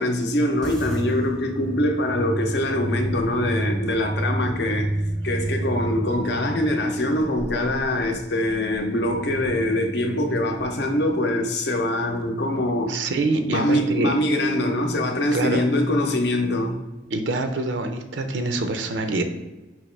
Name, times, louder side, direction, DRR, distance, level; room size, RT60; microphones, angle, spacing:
voice 1, 0.0-4.9 5.2-13.0 13.5-16.8, left 1 dB, 65° left, 0.7 m, -23 dB
sound 1, 0.6-11.2, right 1 dB, 5° left, 0.6 m, -31 dB
voice 2, 12.9-14.1 15.3-15.6 17.1-19.2, right 2 dB, 85° right, 0.5 m, -25 dB
5.4 x 2.9 x 3.2 m
head